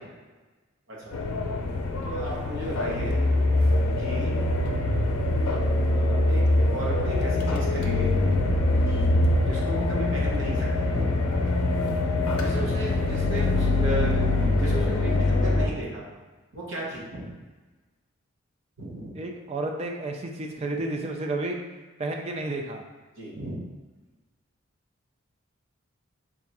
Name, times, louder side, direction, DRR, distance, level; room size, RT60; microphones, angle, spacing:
voice 1, 0.9-1.3 2.0-3.3 4.0-4.4 5.8-8.4 8.9-9.0 9.3-11.1 12.4-14.2 14.6-16.0 16.5-17.3 18.8-19.1 23.2-23.6, right 1 dB, 60° right, -4 dB, 0.9 m, -35 dB
sound 1, 1.1-15.7, left 2 dB, 90° left, 0.5 m, -24 dB
voice 2, 19.2-21.6 22.0-22.8, right 2 dB, 30° right, 2 dB, 0.3 m, -31 dB
3.5 x 2.3 x 4.0 m, 1.3 s
head